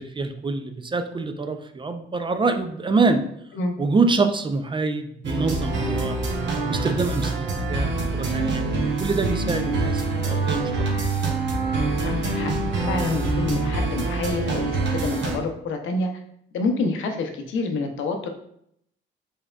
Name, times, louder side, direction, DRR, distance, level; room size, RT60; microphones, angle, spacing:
voice 1, 0.0-3.2 3.8-6.2 6.7-8.7 9.0-10.9, right 3 dB, 25° right, 8 dB, 0.4 m, -25 dB
sound 1, 5.2-15.4, right 3 dB, 65° right, 0.9 m, -25 dB
voice 2, 12.0-16.1 16.5-18.3, left 3 dB, 80° left, 5 dB, 0.7 m, -28 dB
4.4 x 3.4 x 2.3 m, 0.71 s
cardioid pair, 90°, 20 cm